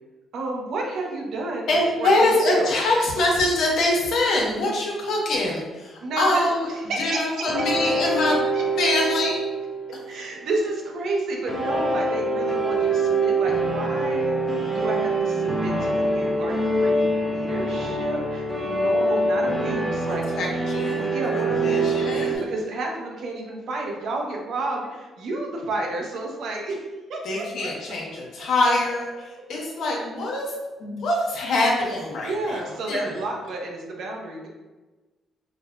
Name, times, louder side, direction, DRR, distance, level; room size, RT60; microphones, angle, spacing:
voice 1, 0.3-1.7 2.0-2.8 6.0-7.4 7.8-7.9 8.3-8.6 10.1-20.3 20.6-26.8 27.1-28.0 32.2-34.5, right 2 dB, 70° right, 0 dB, 0.7 m, -31 dB
voice 2, 1.7-6.6 7.0-8.4 8.8-9.4 20.4-21.1 21.3-22.4 27.2-30.5 30.8-32.6 32.9-33.1, left 2 dB, 70° left, -2 dB, 0.9 m, -24 dB
sound 1, 7.5-10.6 11.5-22.4, right 2 dB, ahead, 0.6 m, -24 dB
4.6 x 2.2 x 2.4 m, 1.2 s
cardioid pair, 90°, 0 cm